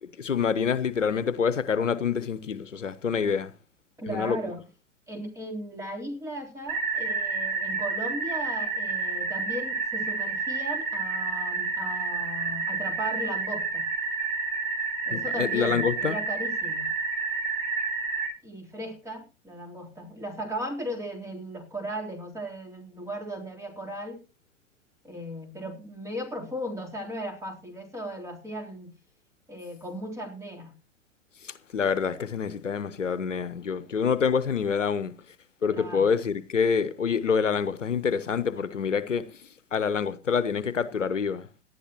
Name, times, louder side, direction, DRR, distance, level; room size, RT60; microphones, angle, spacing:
voice 1, 0.0-3.5 4.1-4.4 15.1-16.2 31.4-35.1 35.6-39.4 39.7-41.5, left 6 dB, 85° left, 0.9 m, -27 dB
voice 2, 4.0-4.6 5.1-13.9 15.1-16.9 18.4-24.2 25.0-28.9 29.5-30.7 35.7-36.1, equal, 10° right, 3.6 m, -36 dB
sound 1, 6.7-18.3, right 4 dB, 50° right, 4.7 m, -30 dB
18.0 x 11.5 x 3.0 m
figure-of-eight pair, 100°, 37 cm